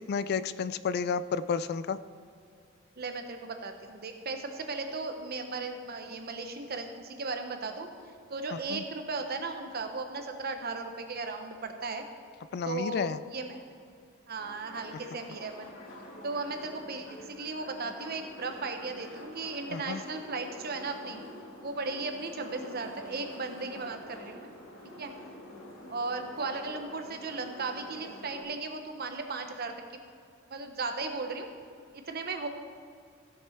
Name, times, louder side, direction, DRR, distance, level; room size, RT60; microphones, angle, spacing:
voice 1, 0.1-2.0 8.7-8.8 12.5-13.2 19.7-20.0, left 6 dB, 55° left, 15 dB, 0.3 m, -31 dB
voice 2, 3.0-7.9 8.3-12.0 12.6-13.7 14.3-15.7 16.2-21.2 21.6-24.5 25.0-25.1 25.9-29.8 30.5-31.5 31.9-32.5, right 3 dB, 50° right, 6 dB, 1.0 m, -36 dB
sound 1, 14.4-28.4, left 1 dB, 85° left, 2.4 m, -47 dB
15.5 x 6.7 x 4.4 m, 2.3 s
head